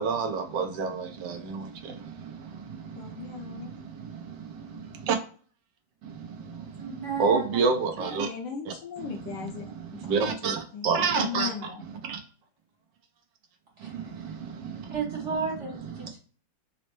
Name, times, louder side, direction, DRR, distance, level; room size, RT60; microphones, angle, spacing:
voice 1, 0.0-5.2 6.0-8.3 10.0-11.5 12.1-12.2 13.8-15.2 15.8-16.1, right 5 dB, 75° right, 1.3 m, -30 dB
voice 2, 2.9-3.7 8.0-9.6 9.9-11.8, left 7 dB, 70° left, 1.4 m, -38 dB
voice 3, 6.8-7.7 13.8-13.9 14.9-16.2, right 5 dB, 45° right, 1.1 m, -33 dB
4.1 x 2.1 x 2.9 m
omnidirectional pair, 2.1 m